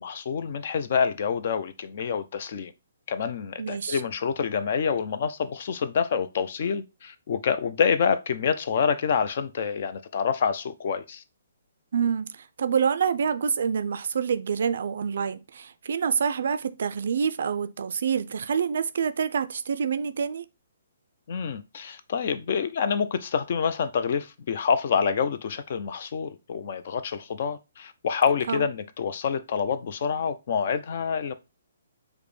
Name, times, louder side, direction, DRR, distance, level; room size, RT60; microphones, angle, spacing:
voice 1, 0.0-2.7 3.1-11.2 21.3-31.3, left 6 dB, 55° left, 0.4 m, -27 dB
voice 2, 3.6-4.0 11.9-20.5 28.5-28.6, right 7 dB, 65° right, 0.3 m, -27 dB
4.9 x 2.1 x 3.1 m
hypercardioid pair, 140°, 0 cm